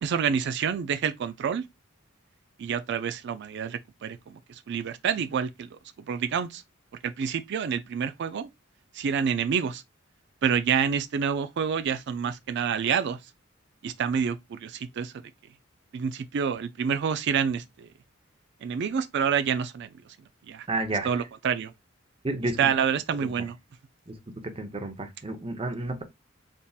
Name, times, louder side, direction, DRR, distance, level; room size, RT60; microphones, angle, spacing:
voice 1, 0.0-1.6 2.6-5.8 6.1-6.6 7.0-8.5 8.9-9.8 10.4-13.2 13.8-15.1 15.9-17.9 18.6-19.9 20.5-20.7 21.0-21.7 22.6-23.6, right 7 dB, 60° right, 0.4 m, -28 dB
voice 2, 20.7-21.1 22.2-22.6 23.2-23.3 24.1-24.2 24.4-26.0, right 2 dB, 30° right, 0.8 m, -31 dB
4.0 x 3.6 x 2.3 m
head